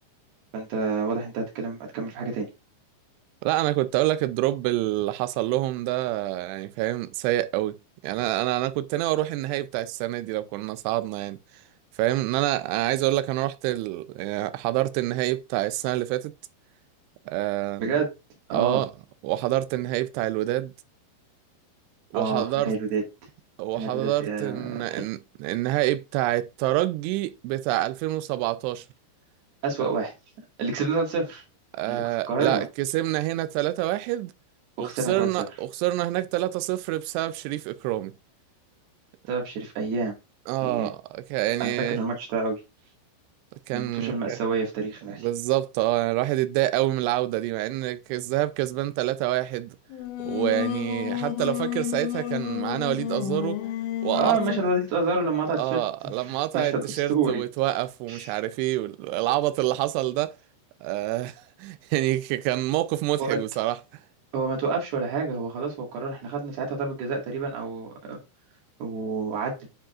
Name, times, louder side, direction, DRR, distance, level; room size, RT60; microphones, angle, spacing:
voice 1, 0.5-2.5 17.8-18.1 18.5-18.8 22.1-23.0 23.8-25.0 29.6-30.1 30.6-31.4 31.9-32.0 32.3-32.6 34.8-35.3 39.3-40.2 40.6-40.9 41.6-42.6 43.7-45.3 54.1-57.4 58.1-58.3 63.2-63.4 64.3-68.2 68.8-69.5, right 4 dB, 65° right, 3.8 m, -28 dB
voice 2, 3.4-7.8 8.0-11.4 12.0-16.3 17.3-17.9 18.5-18.9 19.2-20.7 22.1-22.7 23.6-28.9 29.8-29.9 31.7-34.3 34.8-38.1 40.5-42.0 43.7-44.4 45.2-49.8 50.2-53.6 54.0-54.4 55.6-60.3 60.8-63.8, right 16 dB, 80° right, 2.5 m, -27 dB
Singing, 49.9-54.8, left 12 dB, 90° left, 3.2 m, -30 dB
10.0 x 4.9 x 2.5 m
omnidirectional pair, 5.2 m